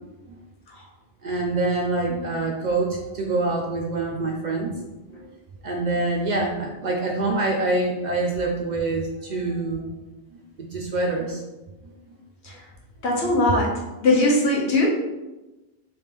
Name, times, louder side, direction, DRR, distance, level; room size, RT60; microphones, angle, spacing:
voice 1, 1.2-5.3 5.6-9.9 10.3-10.4 10.7-11.4, right 2 dB, 55° right, 0 dB, 0.5 m, -25 dB
voice 2, 13.0-13.7 14.0-14.9, left 2 dB, 80° left, -2 dB, 1.2 m, -20 dB
3.5 x 3.0 x 3.2 m, 1.1 s
omnidirectional pair, 1.1 m